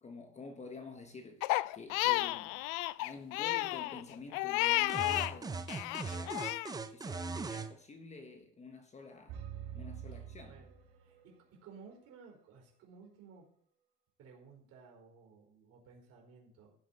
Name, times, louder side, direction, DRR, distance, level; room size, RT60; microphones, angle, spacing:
voice 1, 0.0-2.6 3.0-6.4 6.9-9.4 9.7-10.6, left 3 dB, 20° left, 1.2 m, -49 dB
Crying sobbing, 1.4-5.3 5.7-6.7, left 20 dB, 85° left, 0.5 m, -32 dB
sound 1, 4.9-7.7, right 4 dB, 10° right, 0.5 m, -39 dB
sound 2, 9.3-11.4, right 9 dB, 85° right, 3.5 m, -46 dB
voice 2, 10.1-10.7 11.0-11.3 11.6-13.5 14.2-16.7, right 5 dB, 50° right, 4.2 m, -56 dB
15.5 x 7.4 x 4.3 m
cardioid pair, 155°, 32 cm